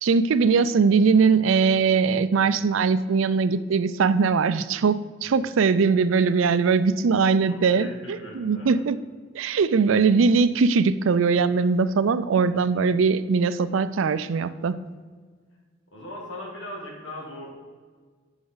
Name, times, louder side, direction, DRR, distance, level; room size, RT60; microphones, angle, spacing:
voice 1, 0.0-9.0 9.3-14.8, right 5 dB, 85° right, 14 dB, 0.4 m, -21 dB
voice 2, 7.5-8.9 12.5-12.7 15.9-17.5, left 1 dB, 75° left, -2 dB, 2.2 m, -39 dB
10.5 x 5.2 x 3.9 m, 1.5 s
head